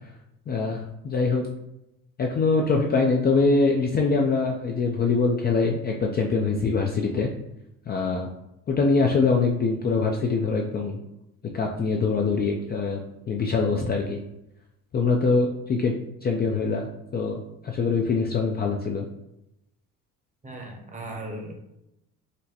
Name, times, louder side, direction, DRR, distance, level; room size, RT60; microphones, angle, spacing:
voice 1, 0.5-1.5 2.2-7.3 7.9-8.3 8.7-11.0 11.5-14.2 14.9-17.4 17.6-19.1, left 4 dB, 30° left, 1 dB, 0.4 m, -23 dB
voice 2, 20.4-21.6, right 1 dB, 20° right, 2 dB, 0.8 m, -37 dB
3.9 x 2.1 x 2.8 m, 0.86 s
supercardioid pair, 90°, 34 cm